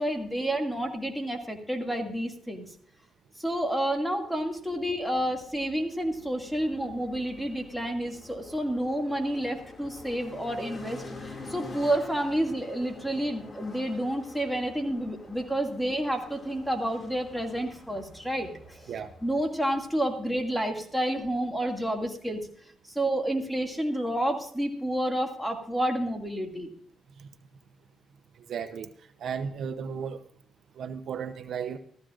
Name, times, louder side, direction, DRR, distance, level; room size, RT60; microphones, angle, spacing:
voice 1, 0.0-2.6 3.4-18.8 19.2-22.4 22.9-26.7, right 1 dB, ahead, 2 dB, 2.2 m, -30 dB
sound 1, 4.4-21.8, left 2 dB, 30° left, 2.3 m, -47 dB
voice 2, 28.5-28.9 29.2-30.3 30.8-31.8, right 7 dB, 65° right, 10 dB, 0.7 m, -34 dB
15.0 x 14.5 x 2.5 m, 0.62 s
cardioid pair, 90°, 0 cm